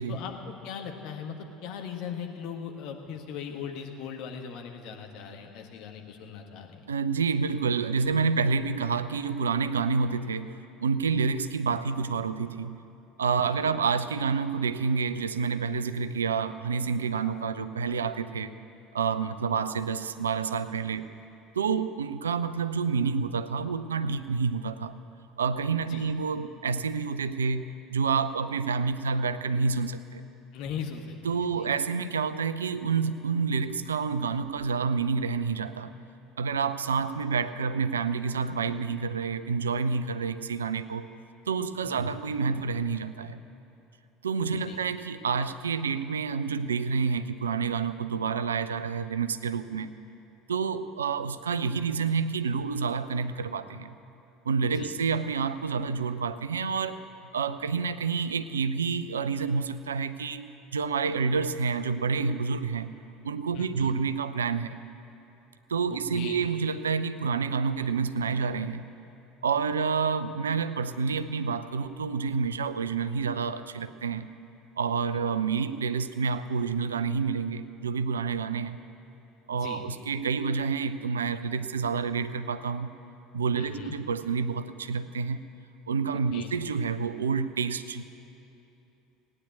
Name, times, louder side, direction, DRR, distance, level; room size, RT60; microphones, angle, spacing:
voice 1, 0.1-1.3 1.6-6.8 13.4-13.7 17.2-17.4 25.9-26.1 30.5-31.7 41.8-42.1 44.7-44.8 54.7-54.9 63.5-63.9 65.9-66.4 79.5-79.8 83.5-83.9 86.3-86.5, left 7 dB, 50° left, 2 dB, 1.6 m, -39 dB
voice 2, 6.9-10.5 10.8-12.8 13.2-18.5 18.9-21.1 21.6-24.9 25.4-30.2 31.2-35.9 36.4-41.1 41.5-43.4 44.2-49.9 50.5-54.0 54.5-57.0 57.3-62.9 63.2-64.8 65.7-68.8 69.4-74.3 74.8-78.8 79.5-82.9 83.3-85.4 85.9-88.0, right 5 dB, 75° right, 13 dB, 0.4 m, -28 dB
18.0 x 9.7 x 8.1 m, 2.9 s
figure-of-eight pair, 65°, 0 cm